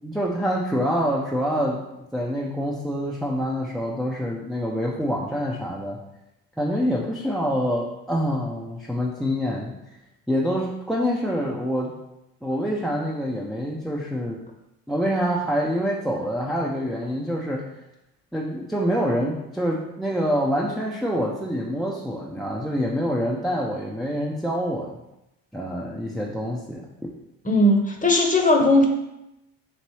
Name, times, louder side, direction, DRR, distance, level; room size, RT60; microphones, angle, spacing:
voice 1, 0.0-1.8 2.1-6.0 6.6-9.7 10.3-11.9 12.4-14.4 14.9-17.7 18.3-25.0 25.5-27.1, equal, ahead, -3 dB, 0.4 m, -26 dB
voice 2, 27.4-28.9, left 1 dB, 20° left, 2 dB, 0.8 m, -18 dB
4.2 x 2.9 x 3.1 m, 0.88 s
supercardioid pair, 70°, 44 cm